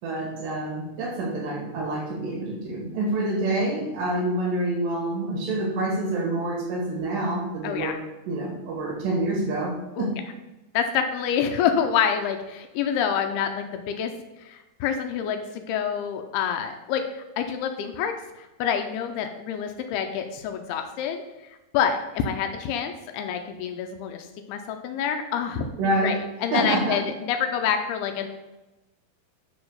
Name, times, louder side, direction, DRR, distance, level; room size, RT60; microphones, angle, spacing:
voice 1, 0.0-8.0 8.3-10.2 25.8-26.2 26.5-27.0, right 2 dB, 70° right, -1 dB, 4.0 m, -27 dB
voice 2, 7.6-8.0 10.0-10.1 10.7-14.1 14.4-21.2 21.7-25.7 26.0-28.3, left 8 dB, 85° left, 5 dB, 2.3 m, -27 dB
9.0 x 3.9 x 6.8 m, 1.0 s
omnidirectional pair, 5.2 m